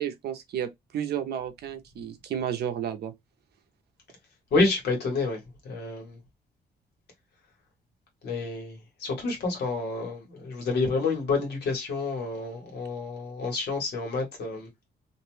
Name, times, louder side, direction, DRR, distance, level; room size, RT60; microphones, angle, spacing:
voice 1, 0.0-3.1, right 9 dB, 75° right, 0.6 m, -32 dB
voice 2, 4.5-6.2 8.2-14.7, left 3 dB, 75° left, 1.3 m, -29 dB
2.6 x 2.1 x 3.1 m
wide cardioid pair, 175°, 17 cm